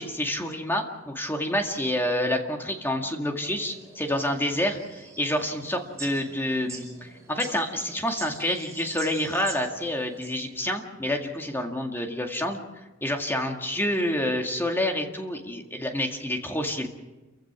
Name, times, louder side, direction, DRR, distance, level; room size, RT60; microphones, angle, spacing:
voice 1, 0.0-12.6 13.0-16.9, left 1 dB, 10° left, 3 dB, 2.0 m, -28 dB
sound 1, 3.3-10.4, right 4 dB, 15° right, 5.0 m, -44 dB
29.0 x 16.0 x 6.1 m, 1.1 s
head